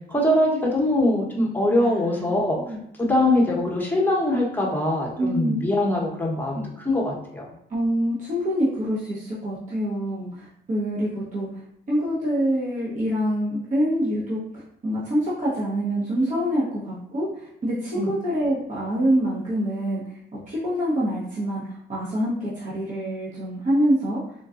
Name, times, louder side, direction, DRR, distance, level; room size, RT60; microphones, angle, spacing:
voice 1, 0.1-2.6 3.0-7.4 17.9-18.1, left 1 dB, 10° left, -3 dB, 1.0 m, -22 dB
voice 2, 1.8-2.8 5.2-5.6 7.7-11.5 11.9-14.4 14.8-20.0 20.5-24.2, equal, 40° right, -8 dB, 0.9 m, -25 dB
3.9 x 2.2 x 2.4 m, 0.79 s
cardioid pair, 90°, 20 cm